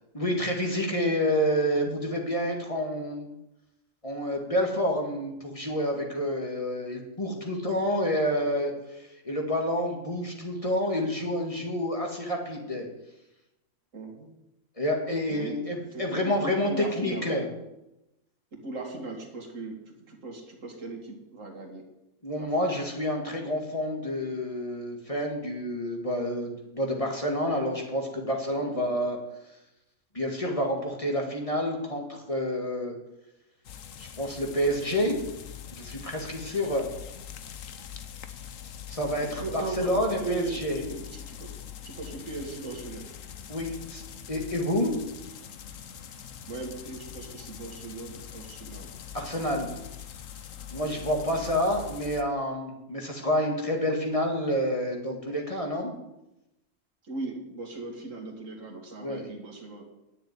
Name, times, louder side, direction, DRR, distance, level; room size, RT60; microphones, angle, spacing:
voice 1, 0.1-3.3 4.0-8.7 9.2-12.9 14.8-16.7 17.0-17.5 22.2-29.2 30.1-32.9 34.0-35.2 35.7-36.9 38.9-39.4 39.8-40.8 43.5-44.0 44.3-44.9 49.1-49.7 50.7-55.9 59.0-59.2, equal, 25° left, 1 dB, 2.2 m, -28 dB
voice 2, 13.9-14.3 15.3-15.6 15.9-17.3 18.5-21.9 22.4-22.8 28.6-28.9 39.0-41.6 41.8-43.1 46.5-48.9 49.4-49.6 51.3-51.5 57.0-59.8, right 3 dB, 80° right, 2 dB, 2.5 m, -38 dB
sound 1, 33.6-52.2, left 9 dB, 90° left, 1.3 m, -43 dB
10.5 x 6.7 x 9.3 m, 0.91 s
omnidirectional pair, 1.3 m